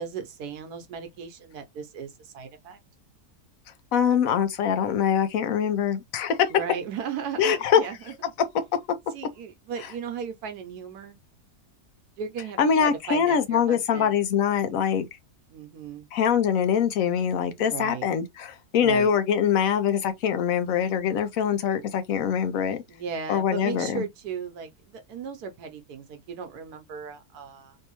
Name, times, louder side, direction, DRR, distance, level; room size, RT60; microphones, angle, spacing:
voice 1, 0.0-2.8 6.5-8.1 9.1-11.2 12.2-14.2 15.5-16.1 17.6-18.1 18.8-19.1 22.9-27.8, right 6 dB, 80° right, 1.2 m, -36 dB
voice 2, 3.9-6.5 7.4-7.8 12.6-15.1 16.1-22.8 23.3-24.0, left 8 dB, 65° left, 1.0 m, -23 dB
3.4 x 2.6 x 2.9 m
omnidirectional pair, 1.6 m